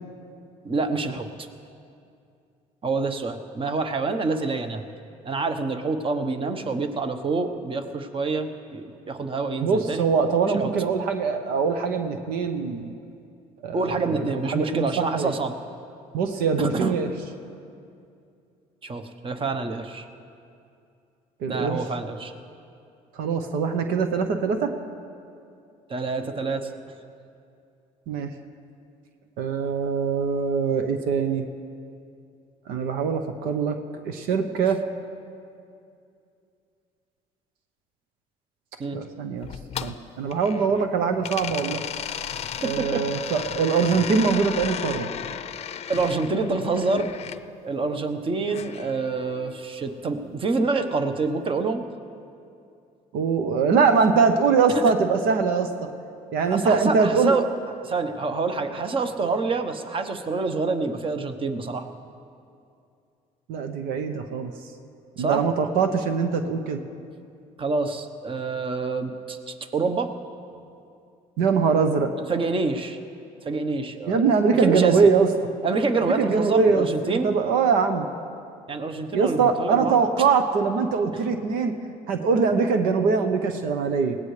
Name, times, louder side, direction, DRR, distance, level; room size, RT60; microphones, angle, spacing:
voice 1, 0.6-1.3 2.8-4.8 5.2-10.0 13.7-15.5 16.6-16.9 18.8-20.1 21.5-22.3 25.9-26.7 38.8-39.0 42.6-43.1 45.9-47.1 47.6-51.8 54.7-54.8 56.5-57.4 57.8-61.9 65.2-65.4 67.6-70.1 72.3-73.0 73.4-74.2 74.5-75.0 75.6-77.3 78.7-80.0, right 3 dB, 35° right, 7 dB, 1.1 m, -27 dB
voice 2, 9.6-12.9 13.6-15.3 16.1-17.1 21.4-21.8 23.2-24.7 28.1-28.3 29.4-31.5 32.7-33.8 34.0-34.8 38.9-39.5 39.8-41.8 42.6-45.1 53.1-55.7 56.3-57.3 63.5-64.5 65.2-66.8 71.4-72.1 74.1-75.3 76.0-78.1 79.1-81.7 82.1-84.2, right 5 dB, 80° right, 7 dB, 0.9 m, -22 dB
sound 1, 39.4-40.8 41.2-47.4 48.5-49.6, left 8 dB, 45° left, 0.6 m, -34 dB
20.5 x 17.0 x 3.3 m, 2.5 s
supercardioid pair, 80°, 15 cm